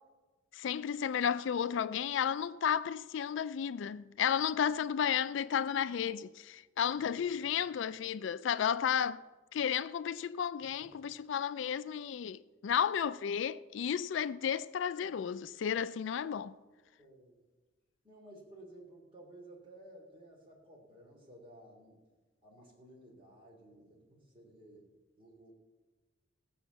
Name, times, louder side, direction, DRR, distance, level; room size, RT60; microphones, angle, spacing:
voice 1, 0.5-9.2 9.5-16.5, left 8 dB, 70° left, 0.3 m, -33 dB
voice 2, 6.9-7.6 10.6-11.0 17.0-17.4 18.0-22.0 22.4-24.9 25.2-25.5, right 1 dB, 25° right, 3.2 m, -55 dB
16.5 x 7.0 x 7.0 m
head